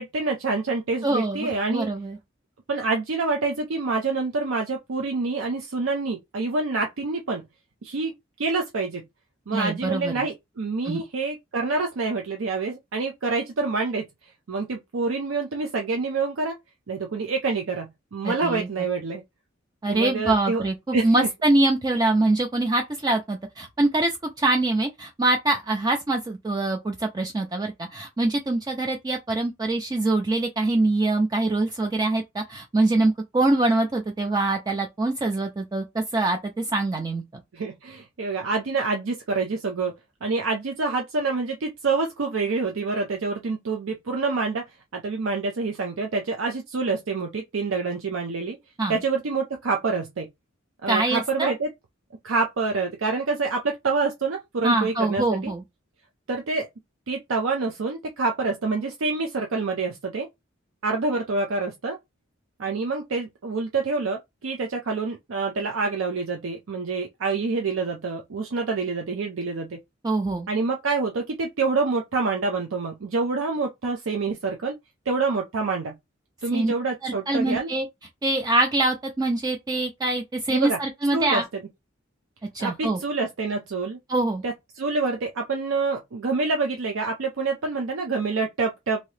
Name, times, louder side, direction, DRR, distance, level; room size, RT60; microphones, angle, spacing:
voice 1, 0.0-1.9 2.7-7.4 7.8-9.0 9.5-14.0 14.5-16.6 16.9-19.2 19.8-20.6 20.9-21.3 37.5-39.9 40.2-44.6 44.9-48.6 48.9-50.3 50.8-51.7 52.2-55.5 56.3-56.7 57.1-60.3 60.8-62.0 62.6-69.8 70.5-74.7 75.1-75.9 76.4-77.7 80.5-80.8 81.1-81.4 82.6-84.0 84.4-89.0, right 3 dB, 80° right, 0.5 m, -27 dB
voice 2, 1.0-2.2 9.5-10.3 10.8-11.0 18.2-18.7 19.8-37.2 48.8-49.0 50.9-51.5 54.6-55.6 70.0-70.5 76.5-76.7 77.0-77.9 78.2-81.4 82.5-83.0 84.1-84.4, right 2 dB, 20° right, 0.4 m, -24 dB
2.8 x 2.7 x 3.2 m
head